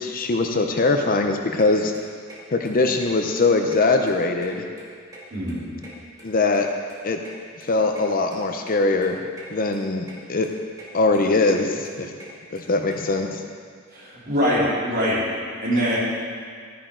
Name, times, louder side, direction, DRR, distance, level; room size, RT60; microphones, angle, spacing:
voice 1, 0.0-1.9 2.5-4.6 6.2-6.7 7.0-7.2 7.7-9.2 9.5-10.5 10.9-12.2 12.5-13.4, left 3 dB, 40° left, 4 dB, 0.7 m, -21 dB
sound 1, 1.6-1.7 1.9-2.4 2.6-2.7 3.0-3.1 3.3-4.1 4.4-5.6 5.8-7.3 7.6-7.7 7.9-8.0 8.3-8.4 8.7-8.8 9.0-9.5 9.7-10.1 10.4-10.9 11.1-12.9, right 2 dB, 15° right, 2.4 m, -44 dB
voice 2, 5.3-5.7 13.9-15.2 15.6-16.0, equal, 45° right, -8 dB, 3.5 m, -23 dB
13.5 x 10.5 x 3.8 m, 2.1 s
head